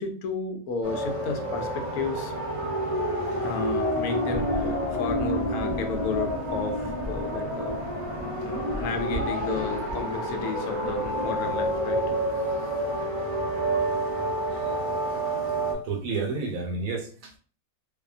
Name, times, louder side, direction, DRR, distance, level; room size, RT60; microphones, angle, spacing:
voice 1, 0.0-2.3 3.4-7.8 8.4-12.0 13.8-14.0 14.4-14.8, left 4 dB, 85° left, 5 dB, 1.1 m, -33 dB
sound 1, 0.8-15.8, right 1 dB, 55° right, 0.3 m, -29 dB
sound 2, 4.3-12.1, equal, 50° left, 0.5 m, -38 dB
voice 2, 15.8-17.4, right 4 dB, 70° right, 2 dB, 1.1 m, -30 dB
2.7 x 2.1 x 2.4 m, 0.40 s
omnidirectional pair, 1.5 m